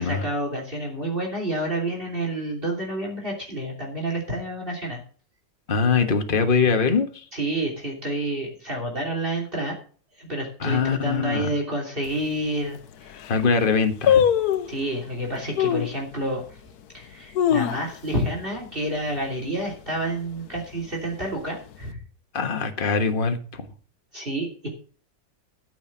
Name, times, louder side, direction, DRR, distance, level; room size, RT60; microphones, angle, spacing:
voice 1, 0.0-5.0 7.3-9.7 10.2-13.2 14.7-16.6 16.9-22.0 24.1-24.7, right 1 dB, 30° right, -1 dB, 3.4 m, -29 dB
voice 2, 5.7-7.2 10.6-11.5 13.3-14.2 22.3-23.7, left 5 dB, 30° left, 7 dB, 1.4 m, -22 dB
sound 1, 12.0-12.1 12.7-12.8 13.1-13.4 14.1-14.8 15.6-16.0 16.5-16.6 17.1-18.2 18.5-18.6 19.0-19.3 19.7-20.1 20.7-21.5 21.7-21.8, left 9 dB, 65° left, 1.3 m, -22 dB
13.5 x 6.4 x 6.1 m, 0.42 s
omnidirectional pair, 1.9 m